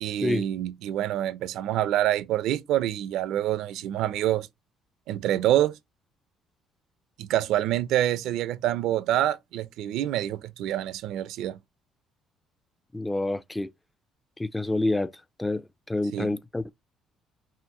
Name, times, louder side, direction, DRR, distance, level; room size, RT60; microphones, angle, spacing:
voice 1, 0.0-4.5 5.1-5.7 7.2-11.6 16.1-16.3, right 12 dB, 80° right, 0.4 m, -26 dB
voice 2, 12.9-13.7 14.4-15.1 15.4-16.7, left 2 dB, 10° left, 0.3 m, -28 dB
5.7 x 2.5 x 2.9 m
cardioid pair, 95°, 0 cm